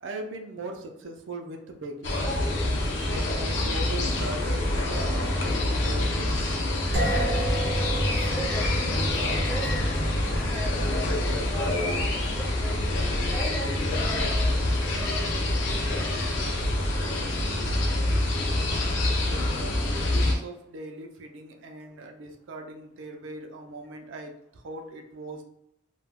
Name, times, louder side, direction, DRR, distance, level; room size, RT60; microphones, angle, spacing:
voice 1, 0.0-2.8 3.0-6.6 18.8-25.4, right 2 dB, 85° right, 3 dB, 0.5 m, -40 dB
sound 1, 2.0-20.3, left 1 dB, 75° left, 0.5 m, -26 dB
sound 2, 6.9-16.7, right 1 dB, 65° right, 0.8 m, -34 dB
voice 2, 8.3-9.9 10.4-12.8 13.3-14.6 15.0-16.7 17.0-17.3, equal, 15° left, -1 dB, 0.5 m, -39 dB
2.2 x 2.1 x 3.4 m, 0.80 s
head